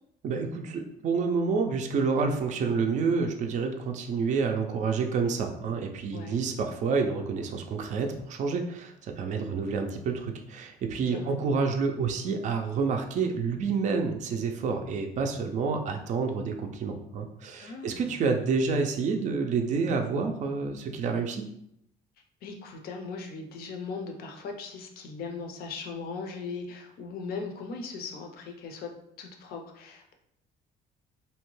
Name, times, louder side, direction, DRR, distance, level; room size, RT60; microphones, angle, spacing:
voice 1, 0.2-21.4, right 5 dB, 45° right, 4 dB, 0.4 m, -28 dB
voice 2, 6.1-6.4 11.1-11.3 17.5-18.2 22.4-28.9 29.2-30.1, left 4 dB, 65° left, 4 dB, 0.5 m, -39 dB
2.7 x 2.2 x 3.0 m, 0.77 s
cardioid pair, 110°, 17 cm